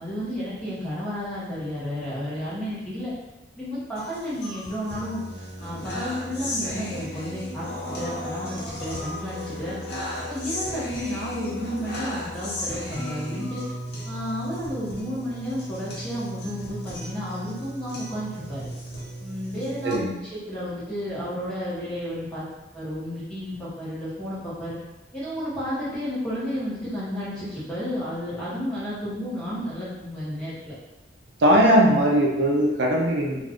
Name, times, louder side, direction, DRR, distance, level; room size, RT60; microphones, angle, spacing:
voice 1, 0.0-3.1 3.6-5.2 5.6-9.8 10.3-13.6 14.0-18.7 19.2-20.0 20.3-22.4 22.7-24.8 25.1-30.7, equal, 5° left, -10 dB, 1.0 m, -32 dB
sound 1, 4.0-20.0, equal, 65° left, 0.8 m, -35 dB
voice 2, 31.4-33.4, equal, 70° right, 0 dB, 0.5 m, -19 dB
2.4 x 2.4 x 3.5 m, 1.0 s
head